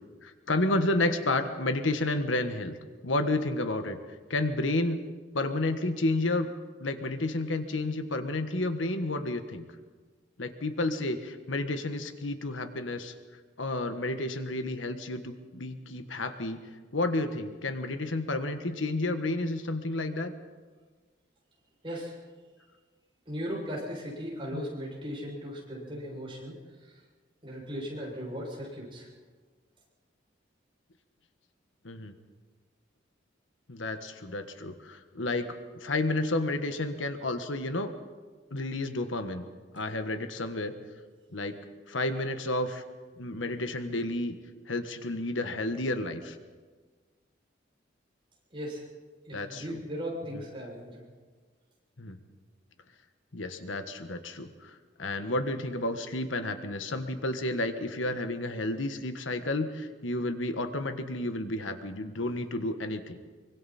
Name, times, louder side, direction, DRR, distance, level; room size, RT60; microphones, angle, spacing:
voice 1, 0.2-2.8 3.0-4.0 4.3-5.0 5.3-6.5 6.8-9.6 10.4-13.1 13.6-16.6 16.9-20.3 24.5-24.6 31.8-32.1 33.7-37.9 38.5-39.4 39.7-40.7 41.3-41.6 41.9-42.8 43.2-44.3 44.7-46.4 49.3-49.8 52.0-52.2 53.3-63.2, left 2 dB, 90° left, 8 dB, 1.5 m, -31 dB
voice 2, 21.8-22.2 23.3-26.5 26.8-26.9 27.4-29.1 48.5-48.8 49.2-51.0, equal, 25° right, -3 dB, 6.7 m, -37 dB
25.0 x 24.5 x 4.3 m, 1.4 s
head